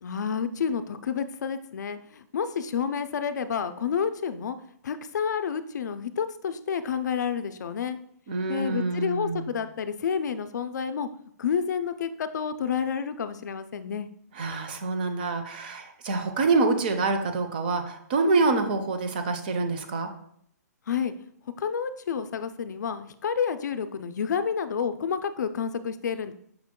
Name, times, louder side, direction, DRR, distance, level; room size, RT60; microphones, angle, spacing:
voice 1, 0.0-4.6 4.8-8.0 8.5-11.1 11.4-14.1 20.9-21.1 21.6-26.3, left 7 dB, 80° left, 11 dB, 0.4 m, -29 dB
voice 2, 8.3-9.5 14.3-20.1, right 3 dB, 30° right, 7 dB, 0.4 m, -26 dB
5.7 x 2.2 x 3.6 m, 0.66 s
hypercardioid pair, 175°, 9 cm